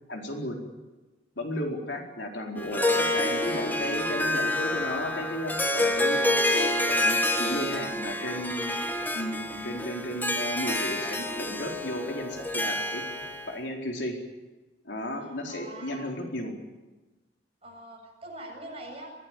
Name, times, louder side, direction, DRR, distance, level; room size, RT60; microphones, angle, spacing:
voice 1, 0.1-0.6 1.4-6.2 6.9-8.8 9.1-13.0 13.5-14.2 14.8-16.5, left 1 dB, 75° left, 1 dB, 4.4 m, -34 dB
Harp, 2.6-13.5, left 1 dB, 10° left, 1.6 m, -28 dB
voice 2, 15.2-16.1 17.6-19.1, right 1 dB, 35° right, 0 dB, 7.7 m, -43 dB
23.5 x 17.5 x 9.3 m, 1.1 s
head